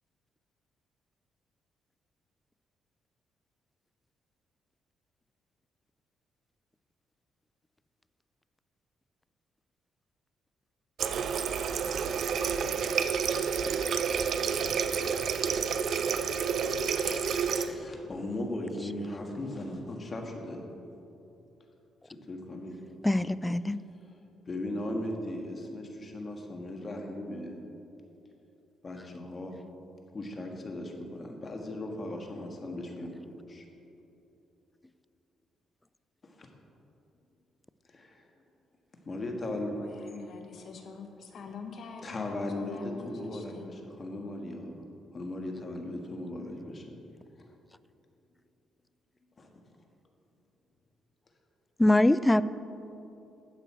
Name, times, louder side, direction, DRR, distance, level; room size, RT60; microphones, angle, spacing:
Water tap faucet, 11.0-17.7, right 6 dB, 60° right, 0.5 m, -29 dB
voice 1, 17.6-20.6 22.3-22.8 24.5-27.6 28.8-29.5 30.1-33.6 36.2-36.5 37.9-38.2 39.1-40.1 42.0-44.7 45.1-47.0 49.4-49.5, left 1 dB, 35° left, 2 dB, 1.5 m, -37 dB
voice 2, 23.0-23.8 51.8-52.4, left 1 dB, 10° left, 16 dB, 0.3 m, -23 dB
voice 3, 39.8-43.7, left 5 dB, 60° left, 4 dB, 1.2 m, -45 dB
12.0 x 7.9 x 4.4 m, 2.8 s
cardioid pair, 90°, 0 cm